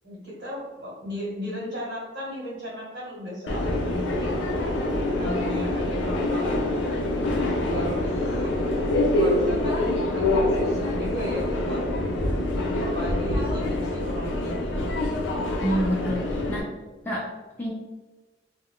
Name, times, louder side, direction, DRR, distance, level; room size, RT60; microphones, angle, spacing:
voice 1, 0.0-6.6 7.4-8.5 9.2-11.8 12.8-15.0, equal, 65° right, -5 dB, 1.0 m, -36 dB
Subway metro underground, 3.5-16.6, left 1 dB, 85° left, 0.5 m, -25 dB
voice 2, 15.6-16.7 17.1-17.3 17.6-17.7, equal, 10° left, -6 dB, 0.4 m, -27 dB
2.3 x 2.1 x 3.5 m, 1.2 s
head